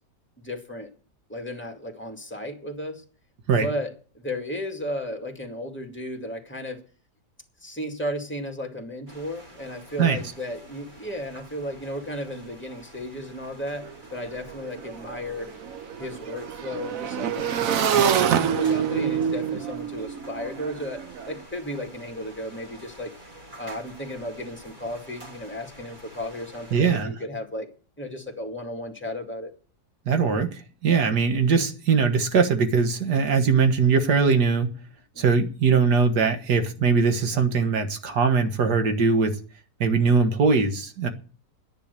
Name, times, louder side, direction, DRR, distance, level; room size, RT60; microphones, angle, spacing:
voice 1, 0.4-0.9 1.3-3.0 3.6-6.8 7.6-15.5 16.0-21.0 21.3-23.1 23.6-27.7 28.0-29.5 35.1-35.4, left 1 dB, 5° left, 2.1 m, -34 dB
sound 1, 9.1-27.1, right 1 dB, 30° right, 2.8 m, -48 dB
Motorcycle / Engine, 13.8-13.9 14.2-21.3, right 8 dB, 60° right, 1.2 m, -26 dB
voice 2, 26.7-27.1 30.1-34.8 35.2-39.4 39.8-41.1, right 5 dB, 75° right, 2.0 m, -21 dB
10.5 x 10.5 x 6.7 m
omnidirectional pair, 1.8 m